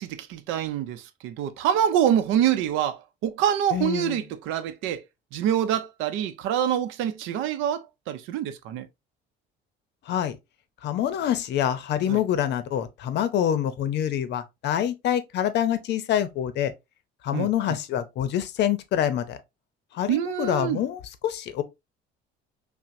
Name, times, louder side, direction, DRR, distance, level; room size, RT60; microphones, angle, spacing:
voice 1, 0.0-5.0 5.3-8.9 12.1-12.2 17.3-17.8 20.1-20.8, right 10 dB, 80° right, 0.6 m, -26 dB
voice 2, 3.7-4.2 10.1-10.4 10.8-16.7 17.2-19.4 19.9-21.6, left 10 dB, 60° left, 0.6 m, -26 dB
5.6 x 2.1 x 2.6 m
cardioid pair, 120°, 20 cm